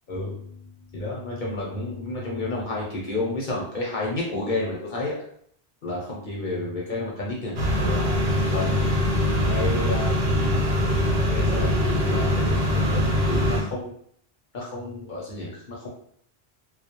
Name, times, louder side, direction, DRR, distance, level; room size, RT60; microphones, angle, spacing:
voice 1, 0.9-5.2 5.8-8.8 9.5-10.3 11.3-13.9 14.5-15.9, left 2 dB, 55° left, -4 dB, 0.7 m, -31 dB
sound 1, 7.6-13.6, left 1 dB, 65° right, 1.0 m, -22 dB
2.2 x 2.0 x 2.8 m, 0.64 s
omnidirectional pair, 1.1 m